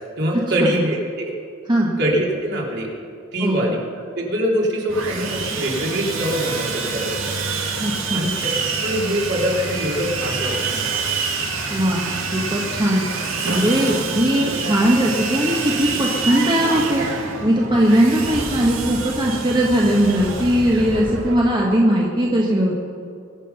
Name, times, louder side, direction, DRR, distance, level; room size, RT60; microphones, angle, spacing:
voice 1, 0.2-1.3 2.0-2.9 3.3-3.8 4.2-7.3 8.1-8.3 8.8-11.0, equal, 55° right, -3 dB, 3.1 m, -23 dB
voice 2, 3.4-3.8 7.8-8.3 11.7-13.1 13.4-17.1 17.4-22.9, equal, 25° right, -2 dB, 1.3 m, -19 dB
Sawing, 4.9-21.3, right 4 dB, 80° right, 2.1 m, -27 dB
23.0 x 7.6 x 5.6 m, 2.5 s
head